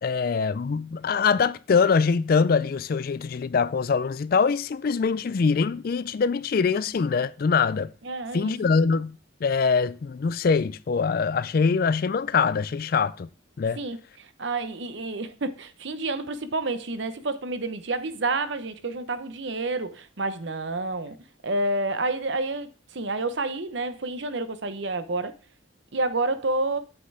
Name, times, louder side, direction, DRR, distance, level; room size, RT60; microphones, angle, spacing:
voice 1, 0.0-7.9 8.3-13.3 13.6-13.8, left 5 dB, 45° left, 0.3 m, -23 dB
voice 2, 8.0-8.6 13.8-21.2 21.4-25.3 25.9-26.8, right 2 dB, 60° right, 0.9 m, -29 dB
8.1 x 8.0 x 3.4 m
head